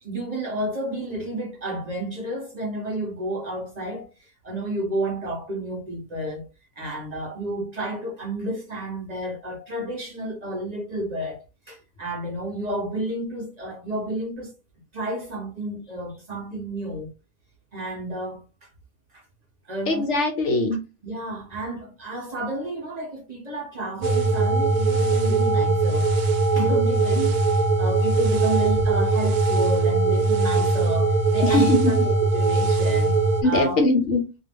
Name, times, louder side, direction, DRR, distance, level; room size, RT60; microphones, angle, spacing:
voice 1, 0.0-4.1 4.4-6.5 6.8-11.4 11.7-14.5 14.9-17.1 17.7-18.4 19.1-19.2 19.7-20.1 21.0-26.1 26.5-33.2 33.4-33.9, right 1 dB, 40° right, 0.7 m, -31 dB
voice 2, 19.9-20.8 31.4-31.9 33.4-34.2, left 2 dB, 60° left, 0.9 m, -21 dB
sound 1, 24.0-33.4, right 3 dB, 85° right, 1.1 m, -21 dB
2.5 x 2.3 x 3.3 m
omnidirectional pair, 1.6 m